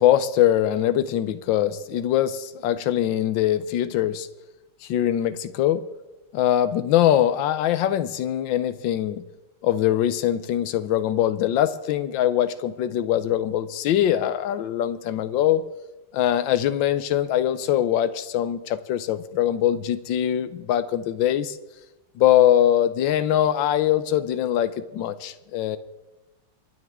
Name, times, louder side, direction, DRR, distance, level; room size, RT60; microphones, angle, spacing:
voice 1, 0.0-4.3 4.8-5.8 6.3-9.2 9.6-15.6 16.1-21.6 22.2-25.8, left 11 dB, 85° left, 12 dB, 1.4 m, -22 dB
27.0 x 10.5 x 3.6 m, 1.0 s
omnidirectional pair, 2.0 m